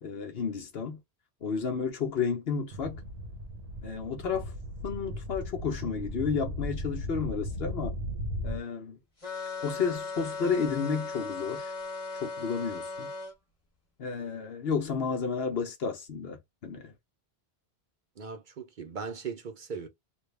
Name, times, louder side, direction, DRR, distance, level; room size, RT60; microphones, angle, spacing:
voice 1, 0.0-1.0 1.4-3.0 3.8-4.5 4.8-7.9 8.4-9.0 9.6-11.7 12.2-13.1 14.0-16.9, left 5 dB, 70° left, 1.0 m, -32 dB
sound 1, 2.7-8.6, equal, 85° right, 1.2 m, -37 dB
sound 2, 9.2-13.3, left 3 dB, 30° left, 1.2 m, -37 dB
voice 2, 18.2-19.9, right 5 dB, 55° right, 0.8 m, -38 dB
3.3 x 2.3 x 3.2 m
omnidirectional pair, 1.1 m